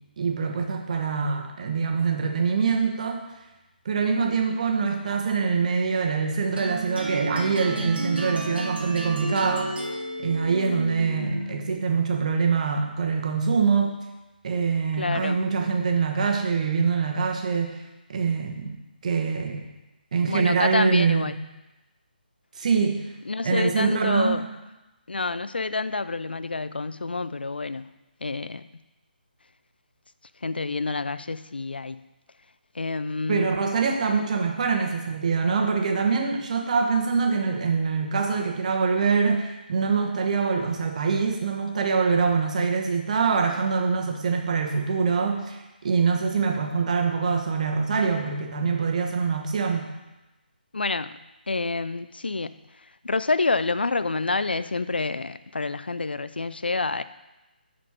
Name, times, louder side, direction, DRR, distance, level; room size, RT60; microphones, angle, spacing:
voice 1, 0.2-3.2 3.8-9.7 10.2-14.0 14.4-17.7 18.1-18.8 19.0-19.7 20.1-21.4 22.6-23.0 23.4-24.5 33.3-49.9, right 5 dB, 45° right, 3 dB, 1.1 m, -24 dB
sound 1, 6.6-11.7, right 2 dB, 90° right, 1.5 m, -32 dB
voice 2, 15.0-15.4 20.3-21.3 23.3-24.4 25.1-27.9 28.2-28.7 30.4-32.0 32.8-33.5 50.7-51.2 51.5-52.5 53.0-57.0, left 3 dB, 80° left, 14 dB, 0.4 m, -28 dB
10.0 x 4.4 x 4.4 m, 1.0 s
figure-of-eight pair, 145°, 5 cm